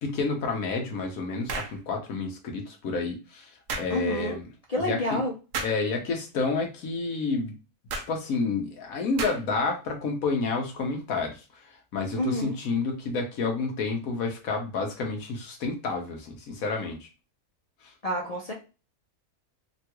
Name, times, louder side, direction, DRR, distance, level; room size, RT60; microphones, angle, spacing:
voice 1, 0.0-4.5 4.8-5.2 5.6-7.5 7.9-11.4 11.9-17.1, left 4 dB, 75° left, 2 dB, 1.3 m, -30 dB
sound 1, 1.5-1.8 3.7-3.9 5.5-5.8 7.9-8.1 9.2-9.6, right 4 dB, 70° right, 1.0 m, -33 dB
voice 2, 3.9-4.4 4.7-5.3 12.2-12.5 18.0-18.5, left 1 dB, 60° left, -1 dB, 0.4 m, -28 dB
3.4 x 2.3 x 2.9 m, 0.31 s
omnidirectional pair, 1.5 m